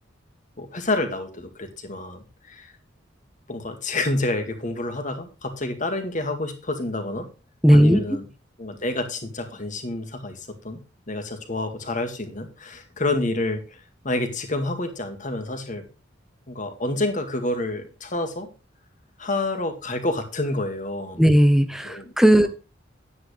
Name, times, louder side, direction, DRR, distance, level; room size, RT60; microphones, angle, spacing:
voice 1, 0.6-2.7 3.5-7.3 7.7-8.3 8.6-10.8 11.1-13.8 14.0-15.9 16.5-18.5 19.2-21.3 21.8-22.5, left 2 dB, 40° left, 7 dB, 2.1 m, -28 dB
voice 2, 7.6-8.0 21.2-22.5, equal, ahead, 10 dB, 0.7 m, -16 dB
10.5 x 9.6 x 3.3 m, 0.32 s
head